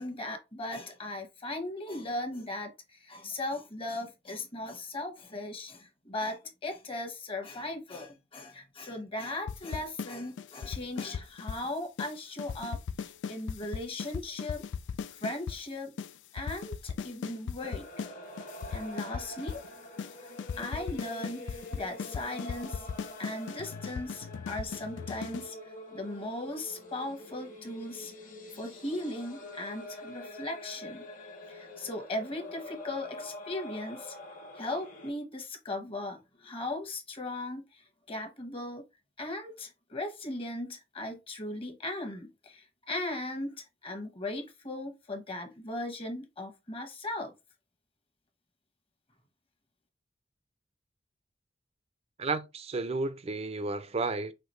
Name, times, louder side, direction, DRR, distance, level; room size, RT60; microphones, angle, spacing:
voice 1, 0.0-14.6 15.2-15.9 16.3-17.9 18.7-19.6 20.6-22.9 23.2-25.6 25.9-28.1 28.5-31.0 31.5-34.1 34.5-38.8 39.2-47.3, left 2 dB, 30° left, 1.2 m, -38 dB
sound 1, 9.5-10.1 10.4-11.7 12.0-12.1 12.4-15.6 16.0-16.1 16.4-18.1 18.4-19.7 20.0-20.1 20.4-25.5, left 6 dB, 85° left, 0.3 m, -37 dB
sound 2, 17.6-35.1, left 1 dB, 50° left, 1.5 m, -46 dB
voice 2, 52.2-54.3, right 3 dB, 35° right, 0.5 m, -32 dB
5.8 x 2.9 x 3.1 m
head